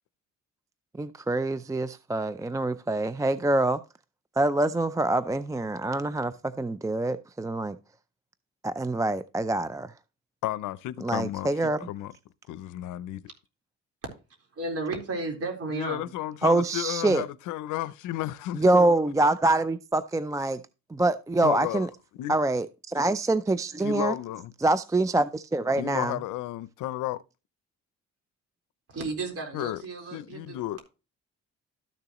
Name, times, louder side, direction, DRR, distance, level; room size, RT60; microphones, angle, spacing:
voice 1, 1.0-3.8 4.4-7.8 8.6-9.9 11.0-11.8 16.4-17.2 18.6-20.6 20.9-21.9 22.3-24.2 24.6-26.2, right 2 dB, 10° right, 0.4 m, -25 dB
voice 2, 10.4-12.1 12.5-13.2 15.7-18.6 21.4-21.9 22.2-22.4 23.8-24.5 25.8-27.2 29.5-29.8 30.1-30.8, left 14 dB, 85° left, 0.6 m, -33 dB
voice 3, 14.6-16.1 28.9-30.6, right 3 dB, 50° right, 4.1 m, -33 dB
13.0 x 6.7 x 3.0 m
cardioid pair, 90°, 30 cm